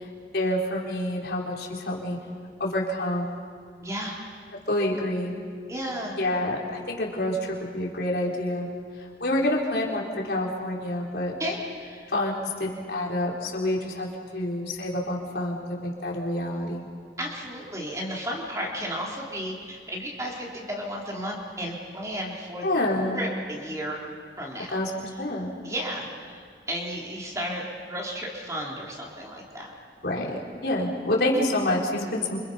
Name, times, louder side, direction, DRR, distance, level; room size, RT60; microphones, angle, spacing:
voice 1, 0.3-2.2 2.6-3.3 4.7-5.3 6.2-8.7 9.2-11.3 12.1-16.8 22.6-23.3 24.7-24.9 25.2-25.5 30.0-32.4, left 1 dB, 65° left, -3 dB, 4.3 m, -27 dB
voice 2, 3.8-4.2 5.7-6.2 11.4-12.1 17.2-24.0 24.4-24.8 25.1-25.2 25.6-27.6 27.9-29.7, equal, 20° right, -2 dB, 3.9 m, -33 dB
30.0 x 27.0 x 5.7 m, 2.1 s
head